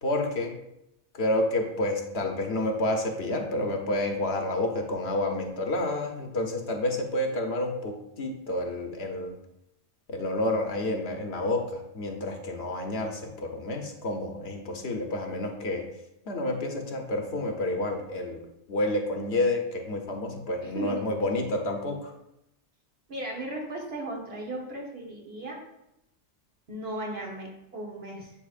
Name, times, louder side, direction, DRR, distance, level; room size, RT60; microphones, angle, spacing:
voice 1, 0.0-0.6 1.1-9.3 10.1-15.8 16.3-18.4 18.7-22.1, left 1 dB, 65° left, 3 dB, 1.1 m, -29 dB
voice 2, 20.6-21.0 23.1-25.6 26.7-28.3, right 1 dB, 60° right, -1 dB, 1.6 m, -36 dB
10.0 x 4.5 x 2.5 m, 0.84 s
omnidirectional pair, 1.2 m